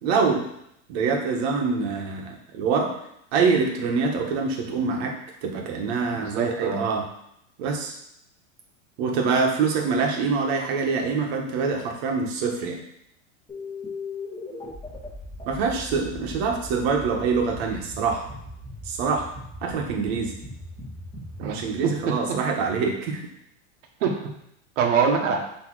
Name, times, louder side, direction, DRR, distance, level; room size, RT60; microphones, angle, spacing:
voice 1, 0.0-0.5 0.9-2.9 3.3-5.1 5.4-7.0 7.6-7.9 9.0-12.8 15.5-18.2 18.8-19.3 19.6-20.3 21.4-23.2, right 5 dB, 55° right, 1 dB, 1.5 m, -25 dB
voice 2, 6.1-6.9 21.4-21.6 21.8-22.4 24.0-24.3 24.8-25.4, right 6 dB, 70° right, 2 dB, 1.4 m, -24 dB
sound 1, 13.5-22.8, left 2 dB, 15° left, 2.4 m, -39 dB
6.1 x 3.4 x 4.8 m, 0.75 s
supercardioid pair, 145°, 38 cm